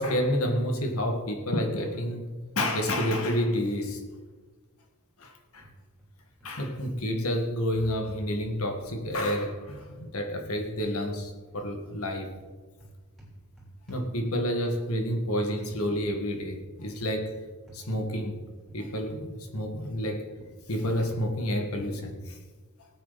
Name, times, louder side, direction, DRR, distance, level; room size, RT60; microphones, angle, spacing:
voice 1, 0.0-2.3 2.6-4.0 5.2-5.7 6.4-12.3 13.9-17.4 17.7-18.4 18.7-20.2 20.7-22.4, equal, 75° left, 4 dB, 2.0 m, -29 dB
sound 1, 5.6-6.1 6.4-6.8 8.1-9.1 10.3-11.3 11.6-14.6 15.6-15.8 16.3-16.6 17.0-17.2 17.7-17.9 18.7-20.1 20.4-22.3, right 1 dB, ahead, 3.5 m, -50 dB
19.0 x 8.7 x 4.2 m, 1.4 s
head